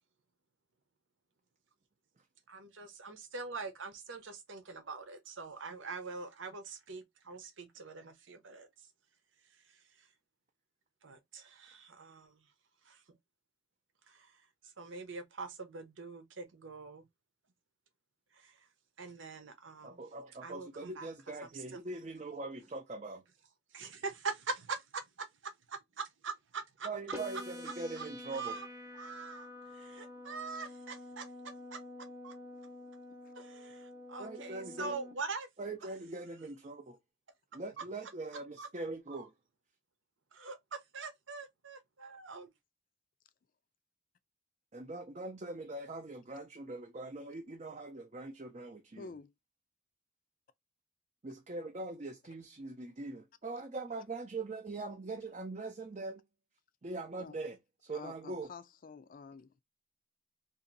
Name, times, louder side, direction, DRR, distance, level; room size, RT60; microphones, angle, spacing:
voice 1, 2.5-8.9 9.4-10.1 11.0-12.5 12.8-13.0 14.1-17.0 18.3-18.7 19.0-20.0 20.4-21.1 21.4-21.6 23.7-24.8 26.0-26.9 28.0-28.1 28.3-28.7 28.9-29.5 29.8-31.3 31.7-31.8 32.2-32.3 33.3-35.5 38.6-38.7 39.2-39.3 40.3-42.5, right 4 dB, 80° right, 0.9 m, -43 dB
voice 2, 19.8-23.2 26.8-28.6 34.2-35.0 35.6-37.0 37.5-39.3 44.7-49.1 51.2-56.2 56.8-58.5, right 2 dB, 35° right, 0.5 m, -42 dB
sound 1, 27.1-35.1, left 1 dB, 15° right, 0.9 m, -48 dB
voice 3, 49.0-49.3 57.2-57.3 57.9-59.6, left 5 dB, 45° left, 0.4 m, -49 dB
2.9 x 2.7 x 3.9 m
head